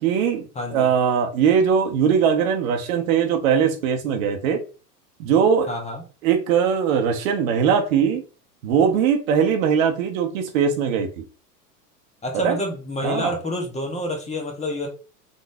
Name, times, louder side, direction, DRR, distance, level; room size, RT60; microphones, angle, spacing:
voice 1, 0.0-4.6 5.2-5.7 6.2-8.2 8.6-11.2 12.4-12.6 13.0-13.3, right 7 dB, 55° right, 0.9 m, -20 dB
voice 2, 0.5-0.9 5.7-6.0 12.2-14.9, left 1 dB, 15° left, 1.2 m, -28 dB
3.8 x 3.7 x 2.7 m
hypercardioid pair, 100°, 49 cm